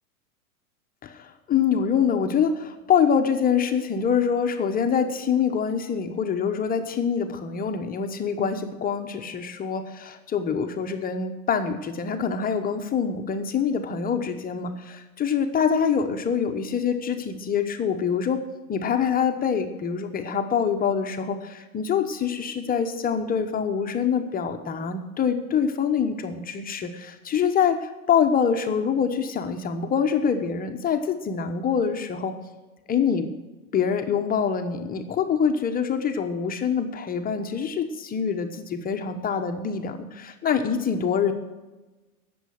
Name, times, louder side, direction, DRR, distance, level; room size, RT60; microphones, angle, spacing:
voice 1, 1.0-18.4 18.7-32.3 32.9-33.3 33.7-41.3, left 7 dB, 20° left, 6 dB, 1.1 m, -25 dB
17.5 x 7.0 x 6.5 m, 1.1 s
hypercardioid pair, 110°, 44 cm